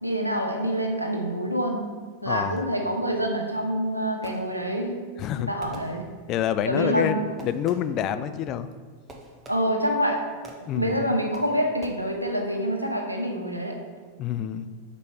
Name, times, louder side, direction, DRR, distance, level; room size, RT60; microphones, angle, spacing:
voice 1, 0.0-1.8 2.2-4.9 5.5-6.0 6.7-7.2 9.5-10.3 10.7-13.8, equal, 90° right, 2 dB, 0.7 m, -26 dB
voice 2, 2.3-2.6 5.2-5.5 6.3-8.7 10.7-11.0 14.2-14.7, left 10 dB, 35° left, 11 dB, 0.3 m, -27 dB
Fireworks, 4.2-4.9 5.6-6.5 7.4-8.1 9.1-10.0 10.4-10.9 11.3-11.9, right 2 dB, 20° right, 0.9 m, -46 dB
5.3 x 4.1 x 4.8 m, 1.5 s
figure-of-eight pair, 90°, 0 cm